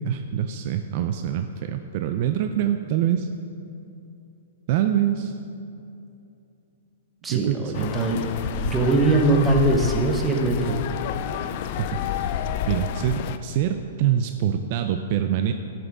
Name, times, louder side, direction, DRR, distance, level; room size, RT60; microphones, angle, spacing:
voice 1, 0.0-3.3 4.7-5.3 7.3-7.9 11.4-11.5 11.8-11.9 12.2-12.3 12.7-15.5, right 10 dB, 45° right, 7 dB, 0.4 m, -25 dB
voice 2, 7.2-8.2 8.6-10.8, right 2 dB, 10° right, 2 dB, 0.9 m, -21 dB
sound 1, 7.7-13.4, left 9 dB, 45° left, 0.4 m, -29 dB
7.9 x 6.1 x 4.8 m, 2.7 s
hypercardioid pair, 135°, 0 cm